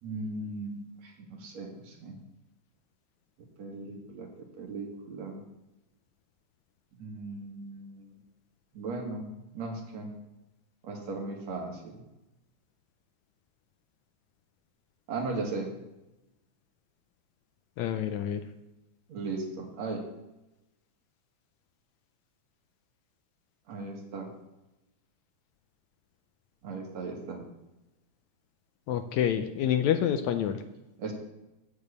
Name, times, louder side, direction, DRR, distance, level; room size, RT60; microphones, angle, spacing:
voice 1, 0.0-2.2 3.6-4.3 4.6-5.4 7.0-8.2 8.7-9.3 9.5-10.1 10.8-12.0 15.1-15.7 19.1-20.0 23.7-24.3 26.6-27.4 31.0-31.1, right 3 dB, 60° right, 1 dB, 2.8 m, -37 dB
voice 2, 17.8-18.4 28.9-30.6, left 9 dB, 80° left, 9 dB, 1.8 m, -27 dB
8.7 x 6.5 x 8.2 m, 0.97 s
omnidirectional pair, 3.6 m